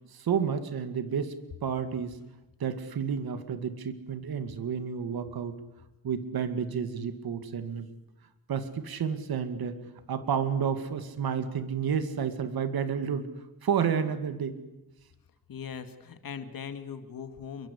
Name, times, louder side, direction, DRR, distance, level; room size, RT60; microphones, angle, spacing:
voice 1, 0.1-1.3 1.6-2.2 2.6-5.6 6.0-7.9 8.5-14.6, right 7 dB, 85° right, 10 dB, 2.1 m, -31 dB
voice 2, 15.5-17.7, left 7 dB, 70° left, 9 dB, 2.2 m, -40 dB
29.0 x 24.0 x 8.4 m, 1.0 s
wide cardioid pair, 145°, 36 cm